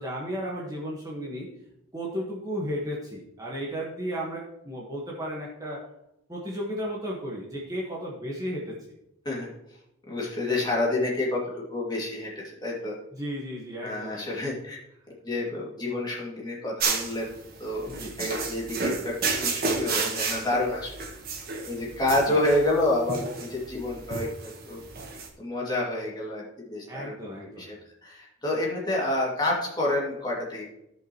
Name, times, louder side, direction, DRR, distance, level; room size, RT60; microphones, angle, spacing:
voice 1, 0.0-1.5 1.9-5.8 6.3-8.7 13.1-14.5 17.9-18.1 22.3-22.4 26.9-27.7, equal, 15° right, -4 dB, 1.4 m, -34 dB
voice 2, 10.1-13.0 13.8-14.8 15.2-17.3 17.6-17.9 18.2-20.9 21.7-24.8 25.4-27.1 27.4-27.8 28.0-30.7, left 1 dB, 20° left, -4 dB, 2.3 m, -28 dB
sound 1, 16.8-25.3, right 4 dB, 45° right, 1.3 m, -31 dB
14.5 x 5.4 x 3.0 m, 0.83 s
head